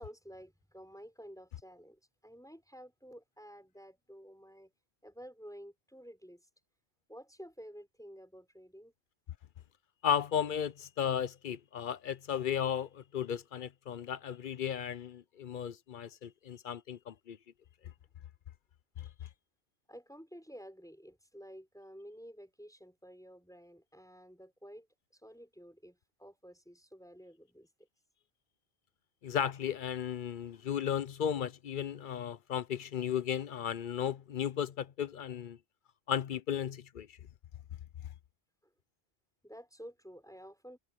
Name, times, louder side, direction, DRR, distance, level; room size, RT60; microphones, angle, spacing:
voice 1, 0.0-4.7 5.0-6.4 7.1-8.9 19.9-24.9 25.1-27.7 39.4-40.8, equal, 5° left, 5.3 m, -51 dB
voice 2, 10.0-17.4 19.0-19.1 29.2-35.6 36.1-37.2, left 9 dB, 55° left, 0.7 m, -35 dB
omnidirectional pair, 1.1 m